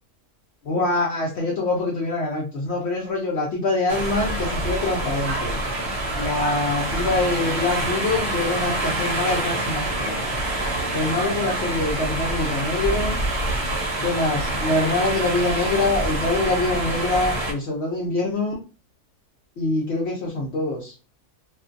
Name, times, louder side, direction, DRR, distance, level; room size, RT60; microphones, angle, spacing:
voice 1, 0.7-5.6 6.2-10.1 10.9-13.2 14.0-18.6 19.6-20.9, left 2 dB, 60° left, -2 dB, 0.7 m, -24 dB
sound 1, 3.9-17.5, right 1 dB, 55° right, 0.8 m, -26 dB
2.5 x 2.3 x 2.5 m, 0.33 s
omnidirectional pair, 1.6 m